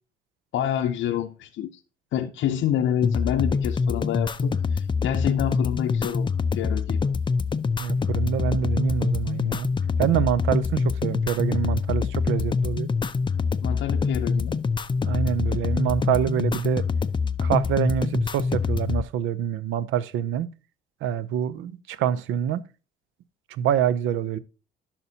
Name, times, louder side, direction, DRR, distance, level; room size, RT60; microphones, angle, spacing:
voice 1, 0.5-1.8 2.1-7.0 13.6-14.6, left 10 dB, 75° left, 0.6 m, -27 dB
sound 1, 3.0-19.0, left 5 dB, 25° left, 0.4 m, -25 dB
voice 2, 7.8-9.7 10.0-12.9 15.1-16.8 17.4-20.5 21.0-22.6 23.5-24.4, right 9 dB, 90° right, 0.5 m, -26 dB
11.0 x 5.8 x 2.7 m
cardioid pair, 90°, 20 cm